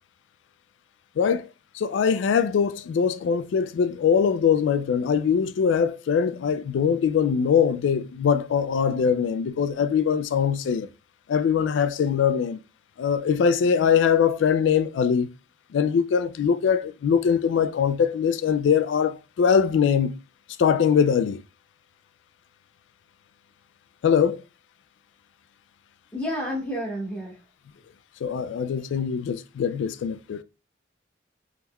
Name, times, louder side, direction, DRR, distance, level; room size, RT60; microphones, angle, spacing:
voice 1, 1.2-1.5 1.7-10.9 11.3-12.6 13.0-15.3 15.7-20.2 20.6-21.4 24.0-24.4 28.2-30.4, left 7 dB, 85° left, 0.3 m, -22 dB
voice 2, 26.1-27.4, equal, 15° left, 0.8 m, -30 dB
3.5 x 3.0 x 2.2 m
head